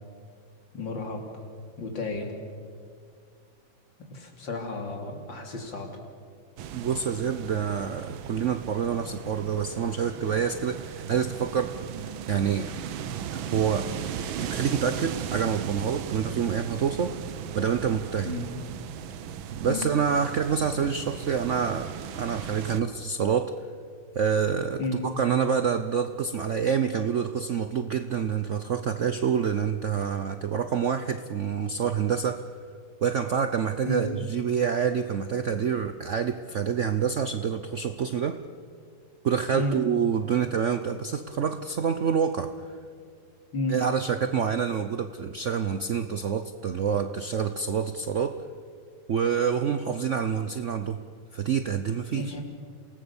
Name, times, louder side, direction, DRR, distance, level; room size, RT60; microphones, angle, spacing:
voice 1, 0.7-1.2 1.8-2.3 4.1-5.9 18.3-18.5 19.6-19.8 24.8-25.0 33.9-34.0 39.5-39.7 43.5-43.8 52.1-52.4, left 2 dB, 70° left, 3 dB, 3.5 m, -32 dB
sound 1, 6.6-22.8, right 8 dB, 85° right, 1.7 m, -37 dB
voice 2, 6.7-12.7 13.5-13.9 14.4-17.2 17.5-18.3 19.5-23.5 24.1-32.5 33.0-38.4 39.2-42.8 43.7-48.4 49.1-51.0 51.3-52.4, right 7 dB, 60° right, 10 dB, 0.7 m, -27 dB
27.5 x 18.5 x 7.0 m, 2.1 s
omnidirectional pair, 2.1 m